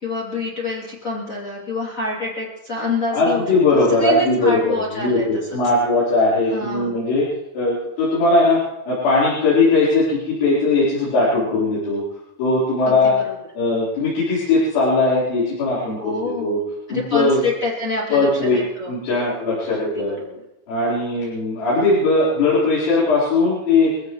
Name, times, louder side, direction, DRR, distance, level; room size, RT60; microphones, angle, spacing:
voice 1, 0.0-5.3 6.5-7.0 11.2-11.5 12.8-13.3 16.0-16.5 16.9-18.9 19.7-20.4, left 3 dB, 25° left, -4 dB, 2.3 m, -27 dB
voice 2, 3.1-7.3 7.5-12.0 12.4-13.1 13.5-16.6 16.9-17.4 18.1-18.6 18.9-20.1 20.7-23.9, left 3 dB, 80° left, -10 dB, 6.8 m, -19 dB
24.5 x 15.0 x 3.2 m, 0.92 s
omnidirectional pair, 5.3 m